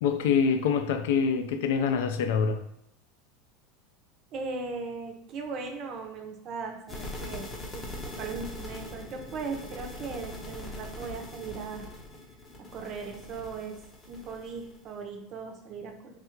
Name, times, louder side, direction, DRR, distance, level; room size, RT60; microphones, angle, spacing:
voice 1, 0.0-2.6, left 6 dB, 75° left, 0.4 m, -25 dB
voice 2, 4.3-11.9 12.6-13.8 14.1-16.2, right 4 dB, 35° right, 0.5 m, -38 dB
sound 1, 6.9-14.9, left 1 dB, 15° left, 0.6 m, -42 dB
3.3 x 2.4 x 4.4 m
supercardioid pair, 170°, 0 cm